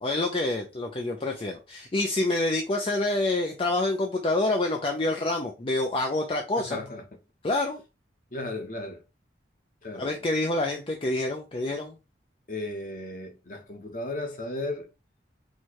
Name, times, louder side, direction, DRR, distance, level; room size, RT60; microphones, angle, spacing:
voice 1, 0.0-6.8 7.4-7.8 9.9-12.0, left 2 dB, 30° left, 0.4 m, -27 dB
voice 2, 6.6-7.0 8.3-9.0 9.8-10.1 12.5-14.9, left 2 dB, 45° left, 1.0 m, -35 dB
4.5 x 2.2 x 4.5 m
head